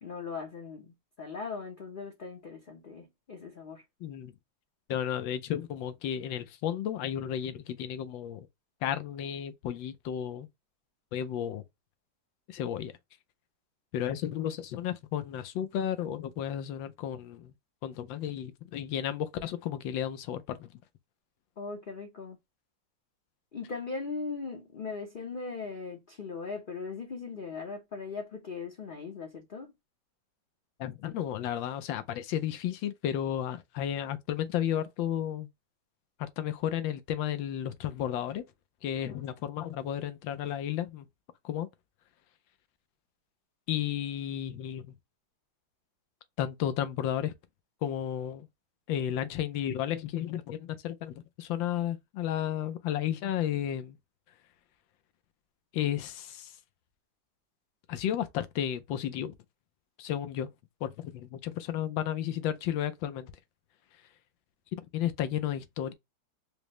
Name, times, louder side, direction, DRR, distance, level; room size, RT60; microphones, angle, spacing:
voice 1, 0.0-3.8 21.6-22.4 23.5-29.7 39.0-39.2, left 4 dB, 55° left, 0.6 m, -39 dB
voice 2, 4.0-4.3 4.9-8.5 8.8-10.5 11.1-11.6 12.5-12.9 13.9-17.5 17.8-20.8 30.8-35.5 36.2-38.4 38.8-41.1 41.4-41.7 43.7-44.9 46.4-47.3 47.8-48.5 48.9-54.0 55.7-56.6 57.9-59.3 60.0-60.5 60.8-63.3 64.8-65.9, left 10 dB, 85° left, 1.4 m, -33 dB
5.1 x 2.1 x 2.9 m
omnidirectional pair, 2.0 m